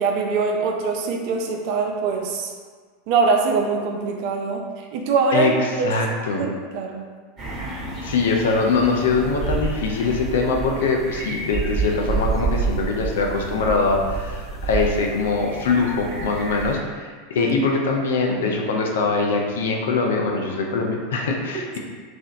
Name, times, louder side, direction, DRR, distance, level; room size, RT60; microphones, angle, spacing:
voice 1, 0.0-2.5 3.1-5.5 5.8-5.9 6.4-7.0 17.4-17.6 21.5-21.8, right 4 dB, 50° right, 2 dB, 0.3 m, -23 dB
voice 2, 5.3-6.4 8.0-21.8, left 4 dB, 60° left, 1 dB, 0.3 m, -22 dB
sound 1, 7.4-16.7, right 4 dB, 25° right, 0.8 m, -29 dB
2.8 x 2.0 x 2.5 m, 1.6 s
figure-of-eight pair, 85°, 0 cm